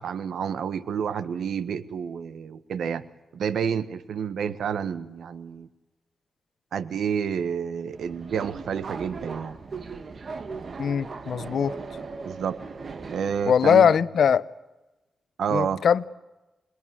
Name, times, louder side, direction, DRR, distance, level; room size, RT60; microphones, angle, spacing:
voice 1, 0.0-3.1 3.3-5.7 6.7-9.6 12.2-12.6 13.1-13.9 15.4-15.8, right 7 dB, 85° right, 1.5 m, -29 dB
Subway metro underground, 7.9-13.6, right 4 dB, 50° right, 2.1 m, -38 dB
voice 2, 10.8-11.7 13.5-14.4 15.5-16.0, left 7 dB, 75° left, 0.9 m, -21 dB
27.5 x 22.0 x 9.7 m
cardioid pair, 95°, 0 cm